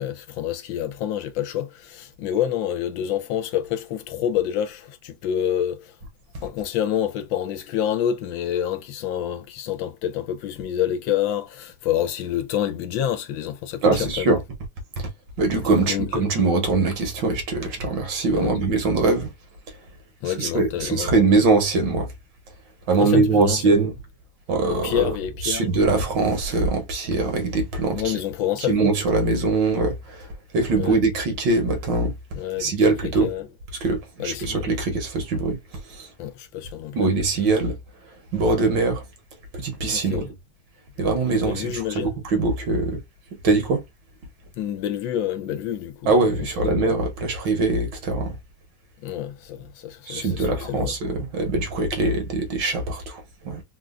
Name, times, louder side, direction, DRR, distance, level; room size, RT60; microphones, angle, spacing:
voice 1, 0.0-6.0 6.4-14.3 15.8-16.1 18.3-18.5 20.2-21.1 23.0-23.8 24.7-26.0 27.9-28.7 30.8-31.0 32.4-32.7 33.2-33.5 34.2-34.7 36.2-37.1 39.9-40.3 41.3-42.1 44.6-46.3 46.6-46.8 49.0-50.9, left 10 dB, 80° left, 1.3 m, -28 dB
voice 2, 13.8-14.4 15.0-15.1 15.4-19.3 20.3-22.1 22.9-23.9 24.5-25.1 25.4-28.2 28.7-32.1 32.6-33.3 33.8-35.6 35.9-36.1 36.9-37.8 38.3-39.0 39.5-40.3 41.0-43.0 43.4-43.8 46.1-48.4 50.1-53.6, right 3 dB, 70° right, 1.6 m, -22 dB
3.7 x 2.3 x 2.3 m
omnidirectional pair, 2.1 m